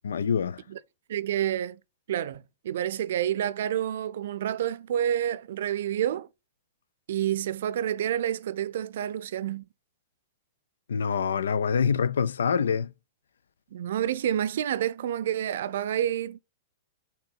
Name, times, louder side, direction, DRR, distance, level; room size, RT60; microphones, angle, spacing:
voice 1, 0.0-0.6 10.9-12.9, left 6 dB, 80° left, 0.4 m, -25 dB
voice 2, 1.1-1.8 2.1-6.3 7.1-9.6 13.7-16.4, right 10 dB, 65° right, 0.5 m, -29 dB
6.3 x 2.9 x 5.4 m
hypercardioid pair, 110°, 0 cm